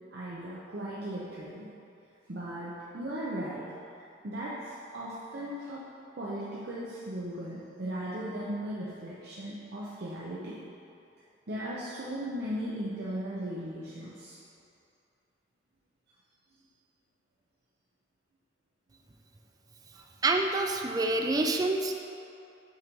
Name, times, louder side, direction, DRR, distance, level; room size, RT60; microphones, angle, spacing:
voice 1, 0.0-1.7 2.3-5.9 6.1-10.6 11.5-14.4 19.9-20.0, right 1 dB, 60° right, -7 dB, 0.6 m, -37 dB
voice 2, 20.2-21.9, right 2 dB, 20° right, 3 dB, 0.3 m, -27 dB
6.3 x 3.0 x 5.1 m, 2.6 s
head